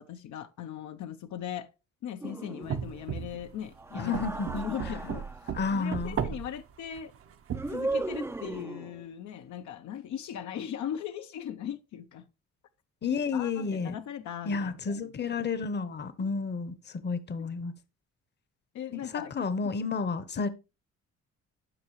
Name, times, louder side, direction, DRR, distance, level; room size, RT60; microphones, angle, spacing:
voice 1, 0.0-1.7 2.0-4.1 4.6-5.3 5.7-7.1 7.7-12.3 13.3-15.1 18.7-19.3 20.4-20.5, left 9 dB, 70° left, 0.6 m, -39 dB
sound 1, 2.2-3.0 3.8-5.6 7.5-9.1, right 2 dB, 10° right, 0.4 m, -36 dB
sound 2, 2.6-3.6 4.1-6.6 7.0-8.4, right 8 dB, 50° right, 0.7 m, -35 dB
voice 2, 3.9-4.6 5.5-6.3 13.0-13.9 14.4-17.7 18.9-20.5, left 5 dB, 35° left, 0.8 m, -31 dB
12.0 x 4.7 x 3.1 m
cardioid pair, 90°, 30 cm